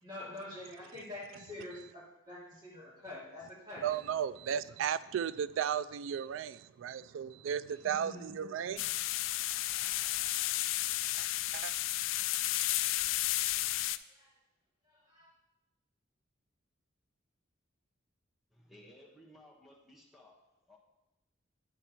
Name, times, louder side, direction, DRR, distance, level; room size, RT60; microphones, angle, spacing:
voice 1, 0.0-4.1 8.0-8.4 12.7-12.9 13.6-14.3 14.9-15.3, left 1 dB, 25° right, 2.6 m, -47 dB
voice 2, 3.8-9.2 11.2-11.3 11.5-11.7, right 8 dB, 80° right, 0.3 m, -35 dB
sound 1, 8.8-14.0, left 15 dB, 80° left, 0.3 m, -32 dB
voice 3, 18.5-20.4 20.7-20.8, left 1 dB, ahead, 1.2 m, -58 dB
10.0 x 4.4 x 4.3 m
head